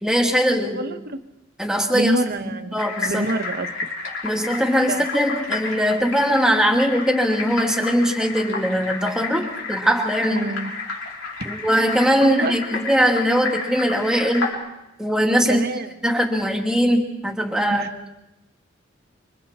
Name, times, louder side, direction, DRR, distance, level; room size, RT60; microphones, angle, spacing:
voice 1, 0.0-0.8 1.6-2.1 2.5-3.3 4.2-10.5 11.5-14.5 15.0-15.7 16.0-17.8, equal, 5° right, 1 dB, 2.5 m, -21 dB
voice 2, 0.6-1.2 1.9-2.8 3.0-3.7 4.9-5.1 10.3-10.7 12.2-12.6 15.4-15.9 17.7-17.9, right 2 dB, 50° right, 8 dB, 1.4 m, -26 dB
sound 1, 2.8-14.5, left 3 dB, 70° left, 5.4 m, -31 dB
28.5 x 25.5 x 4.4 m, 0.93 s
head